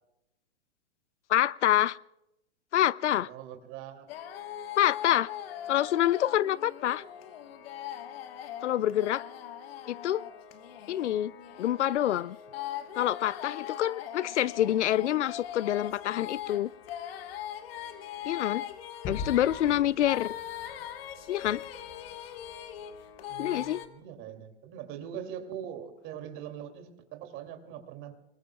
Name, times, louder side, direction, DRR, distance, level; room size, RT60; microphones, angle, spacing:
voice 1, 1.3-2.0 2.7-3.3 4.8-5.3 5.7-7.0 8.6-9.2 9.9-10.2 10.9-11.3 11.6-12.4 13.0-16.7 18.2-18.6 19.1-20.3 21.3-21.6 23.4-23.8, left 12 dB, 85° left, 21 dB, 0.6 m, -26 dB
voice 2, 3.3-4.1 23.3-28.1, right 9 dB, 35° right, 5 dB, 2.6 m, -42 dB
sound 1, 4.1-23.9, left 11 dB, 60° left, 1.4 m, -41 dB
Gunshot gunfire / Fireworks / Boom, 19.0-23.8, left 4 dB, 35° left, 4.3 m, -44 dB
29.0 x 20.0 x 2.3 m, 0.89 s
hypercardioid pair, 130°, 34 cm